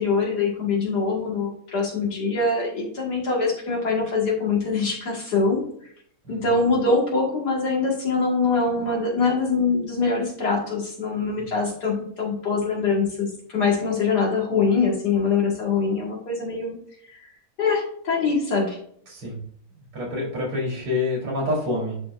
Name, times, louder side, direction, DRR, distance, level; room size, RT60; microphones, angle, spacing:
voice 1, 0.0-5.6 6.3-16.8 17.1-17.2 17.6-18.8, left 4 dB, 50° left, -1 dB, 2.0 m, -23 dB
voice 2, 19.1-19.4 19.9-22.0, left 2 dB, 85° right, -3 dB, 4.0 m, -27 dB
10.5 x 4.2 x 2.4 m, 0.62 s
omnidirectional pair, 2.4 m